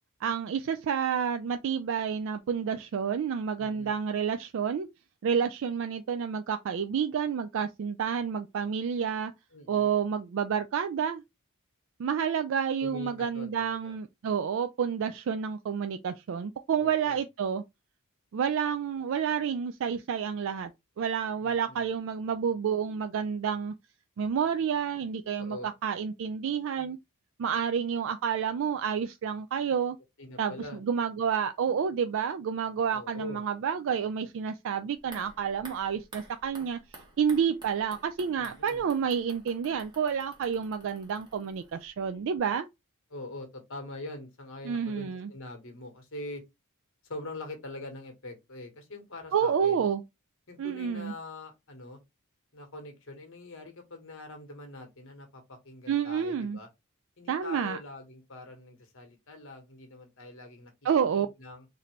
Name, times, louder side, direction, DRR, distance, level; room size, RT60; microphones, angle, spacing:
voice 1, 0.2-4.9 5.2-9.3 9.7-11.2 12.0-17.6 18.3-20.7 21.0-23.7 24.2-27.0 27.4-30.0 30.4-36.8 37.2-42.7 44.6-45.3 49.3-50.0 50.6-51.1 55.9-56.6 57.3-57.8 60.8-61.3, right 7 dB, 60° right, 0.3 m, -29 dB
voice 2, 3.6-4.0 9.5-9.9 12.8-14.0 16.8-17.2 21.4-21.9 25.4-25.7 30.2-30.8 32.9-33.4 38.4-38.8 43.1-46.4 47.0-49.9 50.5-52.0 52.5-56.7 57.2-60.7 61.0-61.6, left 2 dB, 60° left, 1.3 m, -43 dB
sound 1, 35.0-42.1 42.4-42.5, right 2 dB, 20° right, 1.2 m, -52 dB
4.1 x 2.7 x 3.1 m
head